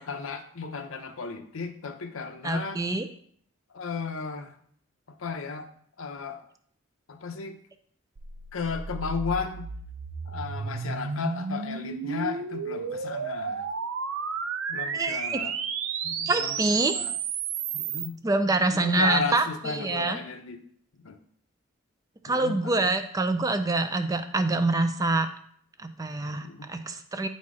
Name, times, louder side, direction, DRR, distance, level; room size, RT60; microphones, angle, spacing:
voice 1, 0.0-2.8 3.7-4.5 5.1-5.7 6.0-6.4 7.1-7.6 8.5-9.7 10.3-13.6 14.7-15.5 16.0-17.1 17.7-18.1 18.7-20.6 21.0-21.2 22.3-22.9 26.4-26.7, left 5 dB, 80° left, 7 dB, 0.8 m, -34 dB
voice 2, 2.4-3.1 14.9-15.4 16.3-16.9 18.2-20.2 22.2-25.3 25.8-27.3, right 2 dB, 15° right, 9 dB, 0.4 m, -26 dB
sound 1, 8.2-18.1, right 6 dB, 90° right, 0.6 m, -32 dB
8.6 x 4.2 x 4.8 m, 0.62 s
head